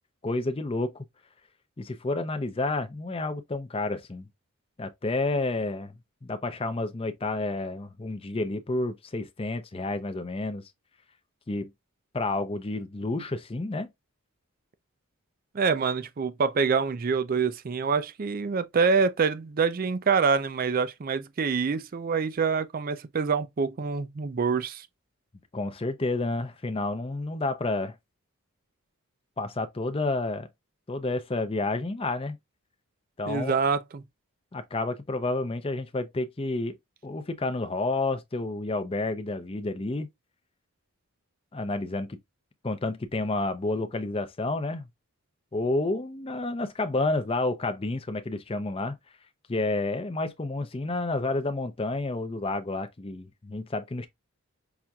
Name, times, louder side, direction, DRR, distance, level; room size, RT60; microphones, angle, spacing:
voice 1, 0.2-0.9 1.8-4.3 4.8-5.9 6.2-10.6 11.5-11.7 12.1-13.9 25.5-27.9 29.4-30.5 30.9-32.4 33.2-33.6 34.5-36.7 37.0-40.1 41.5-42.2 42.6-44.9 45.5-49.0 49.5-54.1, left 2 dB, 25° left, 0.5 m, -30 dB
voice 2, 15.5-24.9 33.3-34.0, right 5 dB, 40° right, 0.4 m, -26 dB
5.8 x 2.6 x 2.2 m
head